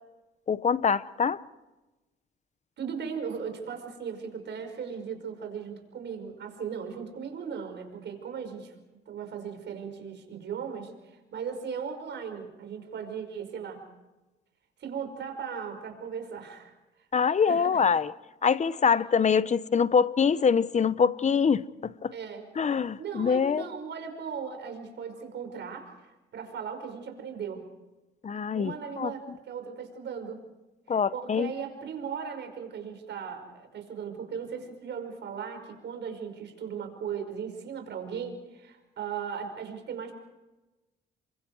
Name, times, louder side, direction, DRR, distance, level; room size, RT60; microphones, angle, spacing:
voice 1, 0.5-1.4 17.1-18.1 18.4-22.1 22.6-23.7 28.2-29.1 30.9-31.5, left 6 dB, 35° left, 0.9 m, -24 dB
voice 2, 2.8-8.7 9.1-13.8 14.8-16.7 17.4-17.9 22.1-22.5 23.0-27.6 28.5-30.4 30.9-40.1, right 7 dB, 65° right, 5.4 m, -37 dB
29.0 x 24.0 x 4.7 m
cardioid pair, 90°, 20 cm